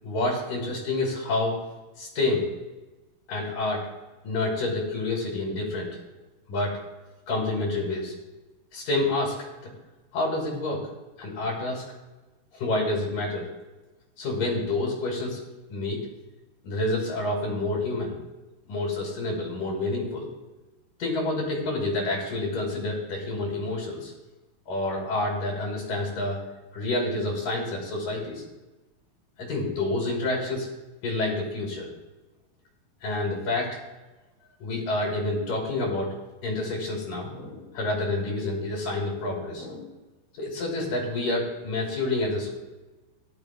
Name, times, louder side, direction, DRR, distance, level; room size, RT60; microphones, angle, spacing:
voice 1, 0.0-1.6 2.0-2.5 3.3-3.9 4.2-6.0 6.5-6.8 7.3-8.1 8.7-9.4 9.6-9.7 10.1-10.9 11.2-11.8 12.5-13.5 14.2-15.4 15.7-16.0 16.6-18.1 18.7-20.3 21.0-24.1 24.7-26.4 26.7-28.4 29.4-30.7 31.0-31.9 33.0-33.8 34.6-36.1 36.4-39.9 40.3-42.5, left 2 dB, 65° left, -2 dB, 3.5 m, -28 dB
16.0 x 11.0 x 2.2 m, 1.1 s
omnidirectional pair, 4.2 m